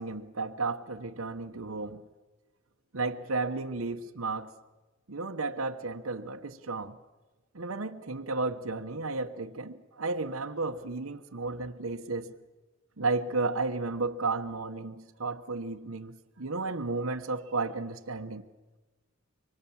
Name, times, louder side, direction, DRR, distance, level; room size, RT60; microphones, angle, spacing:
voice 1, 0.0-2.0 2.9-4.5 5.1-7.0 7.5-12.3 13.0-18.4, right 3 dB, 80° right, 1.1 m, -33 dB
25.5 x 24.5 x 7.2 m
head